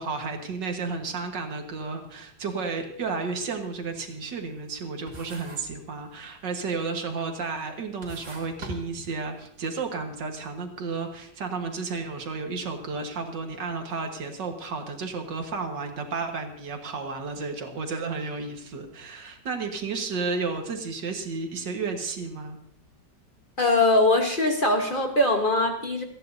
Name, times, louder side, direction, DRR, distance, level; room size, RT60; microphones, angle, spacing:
voice 1, 0.0-22.6, right 4 dB, 75° right, 4 dB, 2.2 m, -32 dB
sound 1, 3.2-3.4 3.8-4.8 5.1-5.8 6.1-6.7 7.3-7.4 7.8-9.5, equal, 50° right, 3.3 m, -42 dB
voice 2, 23.6-26.0, left 2 dB, 35° left, 3 dB, 1.2 m, -22 dB
27.5 x 10.5 x 2.7 m, 0.72 s
omnidirectional pair, 1.9 m